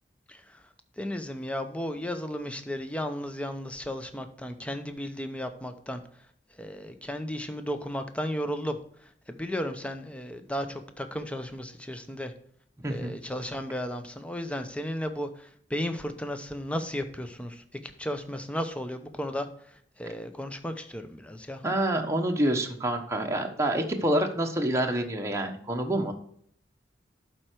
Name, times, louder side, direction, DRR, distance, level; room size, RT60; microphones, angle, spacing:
voice 1, 0.3-0.7 1.0-6.0 6.5-12.3 12.9-21.6, equal, 5° left, 7 dB, 0.7 m, -34 dB
voice 2, 12.8-13.1 21.6-26.1, right 1 dB, 15° right, 2 dB, 1.0 m, -27 dB
11.5 x 4.5 x 4.5 m, 0.64 s
head